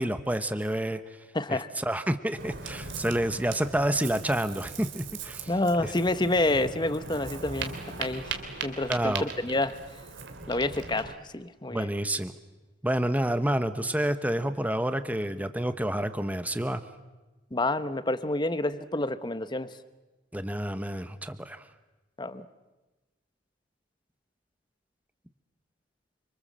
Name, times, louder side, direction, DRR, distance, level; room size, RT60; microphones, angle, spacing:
voice 1, 0.0-1.2 1.5-5.5 5.8-5.9 8.9-9.3 11.7-12.3 12.8-16.8 20.3-21.7, right 1 dB, 10° right, 10 dB, 1.0 m, -29 dB
voice 2, 1.3-1.7 5.5-7.7 8.0-8.3 8.6-9.8 10.5-11.9 17.5-19.7 22.2-22.4, left 2 dB, 25° left, 12 dB, 1.1 m, -28 dB
Ocean, 2.4-11.1, right 4 dB, 70° right, 3.0 m, -39 dB
28.5 x 25.5 x 7.6 m, 1.1 s
head